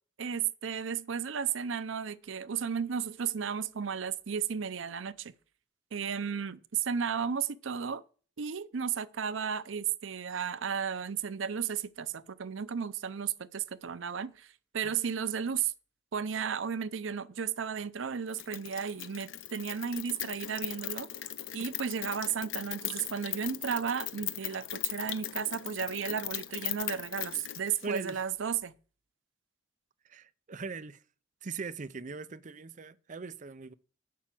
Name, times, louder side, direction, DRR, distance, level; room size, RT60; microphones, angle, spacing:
voice 1, 0.2-5.3 5.9-8.0 8.4-14.5 14.7-15.7 16.1-21.1 21.5-28.7, right 7 dB, 85° right, 0.6 m, -34 dB
Rain, 18.3-28.2, left 12 dB, 90° left, 0.7 m, -39 dB
voice 2, 27.8-28.2 30.0-31.0 31.4-33.7, right 4 dB, 40° right, 0.5 m, -40 dB
8.4 x 5.9 x 7.6 m
head